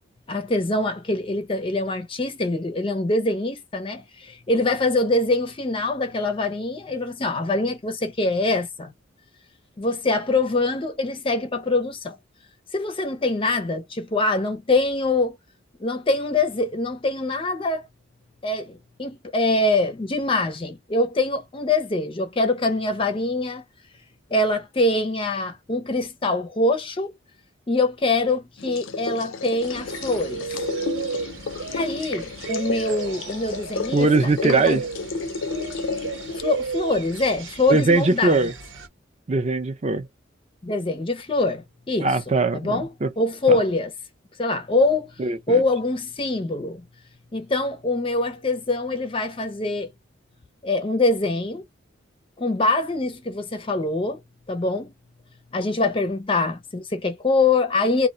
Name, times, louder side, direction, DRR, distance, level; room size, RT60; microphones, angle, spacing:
voice 1, 0.3-8.9 9.8-12.2 12.7-15.4 15.8-17.9 18.4-23.6 24.3-27.1 27.7-30.5 31.7-34.1 34.4-34.8 36.4-38.4 40.6-42.2 42.5-42.9 43.2-43.9 44.4-45.1 45.5-46.8 47.3-49.9 50.6-51.6 52.4-54.2 54.5-54.9 55.5-58.1, left 2 dB, 25° left, 0.5 m, -24 dB
sound 1, 28.6-36.4, left 4 dB, 85° left, 0.5 m, -32 dB
sound 2, 29.6-38.9, right 5 dB, 70° right, 0.9 m, -34 dB
voice 2, 33.9-34.8 37.7-38.5 39.3-40.1 42.0-43.1 43.5-43.6 45.2-45.6, right 3 dB, 35° right, 0.6 m, -21 dB
2.4 x 2.2 x 3.9 m
head